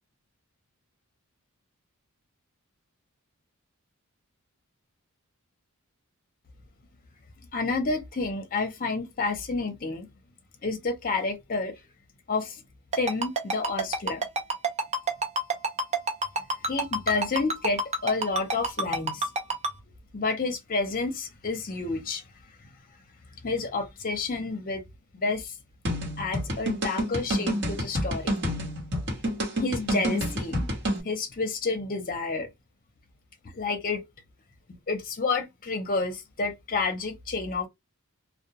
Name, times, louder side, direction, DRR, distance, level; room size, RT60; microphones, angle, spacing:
voice 1, 7.5-10.1 10.6-11.7 12.3-12.6 13.0-14.2 16.6-19.3 20.1-22.2 23.4-24.8 25.1-25.5 26.2-28.3 29.6-30.7 31.0-32.5 33.5-34.0 34.9-37.7, left 3 dB, 40° left, 0.6 m, -29 dB
Ringtone, 12.9-19.7, right 3 dB, 30° right, 0.6 m, -26 dB
sound 1, 25.8-31.0, equal, 55° right, 1.2 m, -28 dB
2.2 x 2.1 x 2.8 m
head